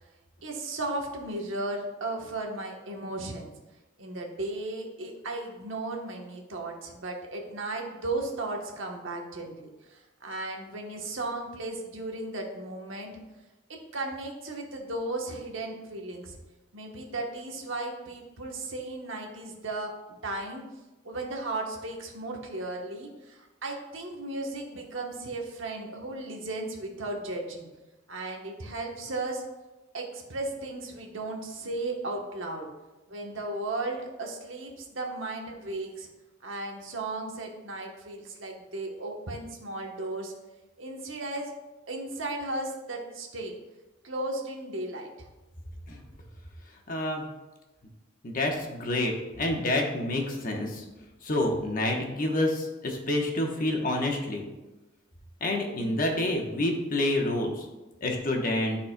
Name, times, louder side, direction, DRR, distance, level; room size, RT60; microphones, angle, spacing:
voice 1, 0.4-3.5 4.0-13.2 13.7-16.4 16.7-20.6 21.0-27.7 28.1-29.4 29.9-32.7 33.1-36.1 36.4-40.3 40.8-41.5 41.9-43.5 44.0-45.1, right 2 dB, 75° right, 1 dB, 1.1 m, -35 dB
voice 2, 46.9-47.2 48.2-50.8 51.2-54.4 55.4-57.6 58.0-58.8, left 1 dB, 45° left, 1 dB, 1.0 m, -28 dB
12.0 x 4.2 x 2.2 m, 1.1 s
head